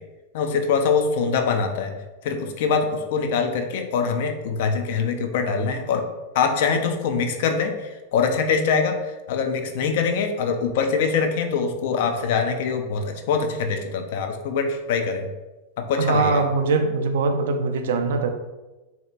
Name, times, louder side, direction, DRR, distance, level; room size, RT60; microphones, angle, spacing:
voice 1, 0.3-2.0 2.2-6.1 6.3-9.0 9.3-15.3 15.8-16.4, left 5 dB, 55° left, 5 dB, 0.4 m, -23 dB
voice 2, 16.0-18.3, right 4 dB, 60° right, 6 dB, 0.3 m, -22 dB
3.4 x 2.7 x 2.4 m, 1.1 s
figure-of-eight pair, 90°, 0 cm